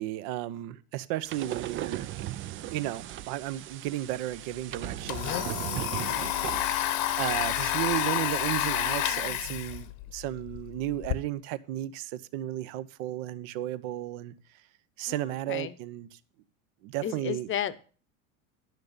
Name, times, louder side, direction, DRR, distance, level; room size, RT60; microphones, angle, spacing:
voice 1, 0.0-2.1 2.7-6.4 7.0-14.3 15.0-16.2 16.8-17.5, right 14 dB, 60° right, 0.9 m, -34 dB
sound 1, 1.3-7.2, right 13 dB, 30° right, 0.4 m, -38 dB
Domestic sounds home sounds, 4.1-4.2 4.5-11.2, left 12 dB, 55° left, 1.1 m, -30 dB
voice 2, 15.1-15.7 17.0-17.8, left 10 dB, 30° left, 0.9 m, -33 dB
10.5 x 6.3 x 6.6 m
hypercardioid pair, 90°, 41 cm